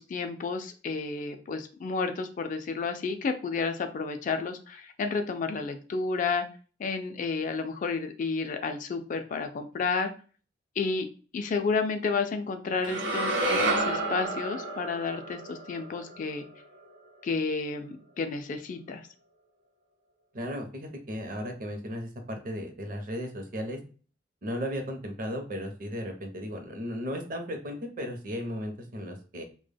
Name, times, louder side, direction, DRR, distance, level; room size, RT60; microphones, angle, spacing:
voice 1, 0.0-6.5 6.8-10.1 10.8-11.1 11.3-16.5 17.2-19.1, left 4 dB, 45° left, 7 dB, 0.3 m, -31 dB
sound 1, 12.8-17.1, right 2 dB, 80° right, 0.8 m, -30 dB
voice 2, 20.3-23.8 24.4-29.4, equal, 50° right, 5 dB, 0.6 m, -35 dB
2.1 x 2.0 x 3.3 m, 0.38 s
head